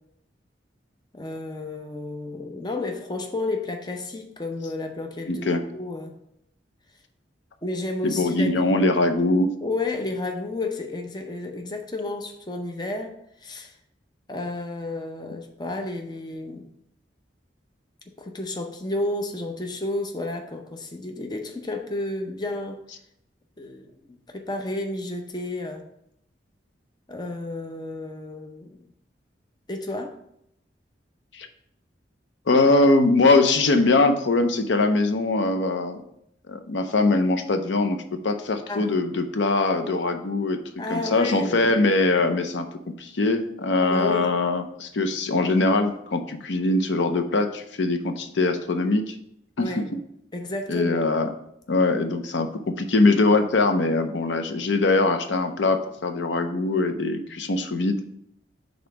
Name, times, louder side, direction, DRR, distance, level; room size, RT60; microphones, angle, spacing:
voice 1, 1.1-5.5 5.7-6.2 7.6-8.6 9.6-13.8 14.3-16.7 18.2-22.8 23.6-25.9 27.1-28.8 29.7-30.2 38.7-38.9 40.8-41.6 43.8-44.3 49.6-49.9 50.3-51.1, left 2 dB, 25° left, 4 dB, 0.6 m, -31 dB
voice 2, 5.3-5.6 8.0-9.5 31.3-31.5 32.5-36.0 36.5-40.6 40.9-42.7 43.0-49.1 49.9-50.0 50.7-51.3 51.7-58.0, left 2 dB, 80° left, 8 dB, 0.6 m, -22 dB
5.2 x 3.9 x 5.7 m, 0.75 s
head